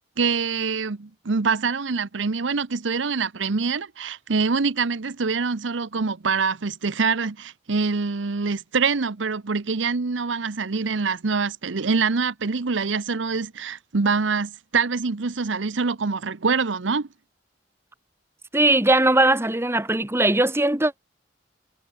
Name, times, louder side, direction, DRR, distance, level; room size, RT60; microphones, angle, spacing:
voice 1, 0.2-17.1, right 4 dB, 85° right, 0.8 m, -25 dB
voice 2, 18.5-20.9, right 2 dB, 15° right, 1.6 m, -19 dB
head